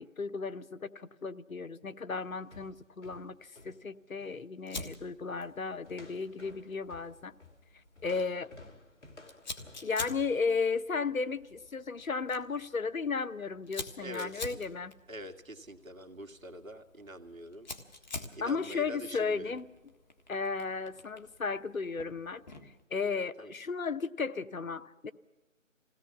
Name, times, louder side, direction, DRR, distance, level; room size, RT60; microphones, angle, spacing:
voice 1, 0.0-7.3 8.0-8.5 9.8-14.9 18.4-19.7 20.3-25.1, left 4 dB, 90° left, 14 dB, 1.0 m, -34 dB
sound 1, 2.2-4.4 4.8-5.0 5.4-5.6 5.9-10.5, left 2 dB, 60° left, 2.5 m, -55 dB
Fire, 4.7-22.8, left 2 dB, 35° left, 1.6 m, -48 dB
voice 2, 14.0-14.6 15.1-17.7 18.3-19.6 23.4-23.5, right 1 dB, 85° right, 7 dB, 2.1 m, -45 dB
21.5 x 17.0 x 7.2 m, 1.2 s
figure-of-eight pair, 160°, 40 cm